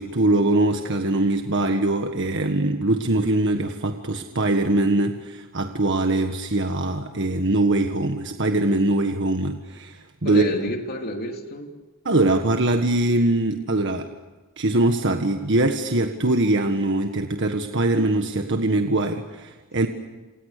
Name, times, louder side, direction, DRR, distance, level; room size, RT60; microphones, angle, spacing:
voice 1, 0.0-10.5 12.1-14.1 14.6-19.9, right 2 dB, 60° right, 5 dB, 1.6 m, -22 dB
voice 2, 10.2-11.8, equal, 45° left, 3 dB, 3.2 m, -30 dB
29.0 x 28.0 x 6.8 m, 1.2 s
head